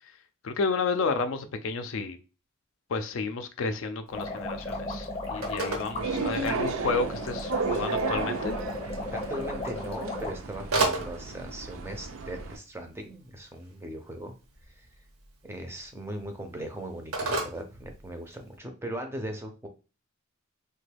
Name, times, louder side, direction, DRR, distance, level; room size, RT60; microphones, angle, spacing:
voice 1, 0.4-2.2 2.9-8.6, left 4 dB, 60° left, 0.4 m, -31 dB
sound 1, 4.1-10.3, left 2 dB, 25° left, 0.7 m, -36 dB
Telephone, 4.1-18.6, right 2 dB, 85° right, 0.8 m, -37 dB
sound 2, 6.0-12.6, right 4 dB, 70° right, 0.4 m, -33 dB
voice 2, 9.1-14.3 14.7-14.9 15.4-19.7, right 1 dB, 10° right, 0.4 m, -38 dB
2.9 x 2.2 x 3.3 m
head